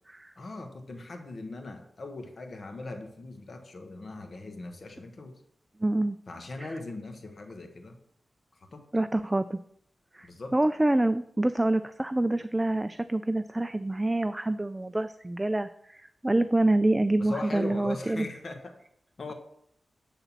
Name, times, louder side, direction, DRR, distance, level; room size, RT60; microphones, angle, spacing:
voice 1, 0.4-5.4 6.3-8.0 8.7-8.9 10.2-10.6 17.2-18.8 19.2-19.3, left 2 dB, 50° left, 5 dB, 1.5 m, -40 dB
voice 2, 5.8-6.2 6.6-6.7 8.9-9.6 10.1-18.3, right 1 dB, 15° right, 11 dB, 0.4 m, -26 dB
11.0 x 4.0 x 7.4 m, 0.70 s
wide cardioid pair, 85°, 0 cm